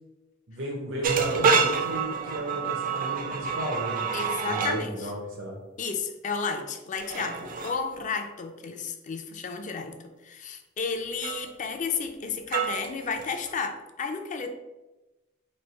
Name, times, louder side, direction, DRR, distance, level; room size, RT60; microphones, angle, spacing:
voice 1, 0.5-5.6, right 1 dB, 80° right, -3 dB, 0.7 m, -34 dB
sound 1, 1.0-4.8 7.0-7.8 11.2-11.5 12.5-13.5, right 5 dB, 45° right, 0.4 m, -27 dB
voice 2, 4.1-5.1 5.8-10.0 10.2-14.5, left 5 dB, 40° left, 6 dB, 0.4 m, -32 dB
3.2 x 2.7 x 4.3 m, 1.1 s
head